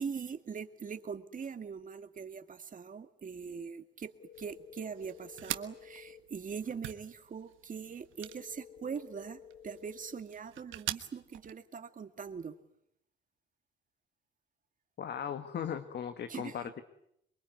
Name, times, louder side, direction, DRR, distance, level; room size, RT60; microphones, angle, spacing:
voice 1, 0.0-12.6 16.3-16.7, right 6 dB, 40° right, 8 dB, 2.1 m, -42 dB
sound 1, 4.2-6.2 8.2-10.2, left 9 dB, 85° left, 2.4 m, -53 dB
sound 2, 4.3-11.5, right 13 dB, 85° right, 1.4 m, -45 dB
voice 2, 15.0-16.8, left 8 dB, 60° left, 10 dB, 1.6 m, -38 dB
24.0 x 23.0 x 9.5 m, 0.76 s
cardioid pair, 90°, 20 cm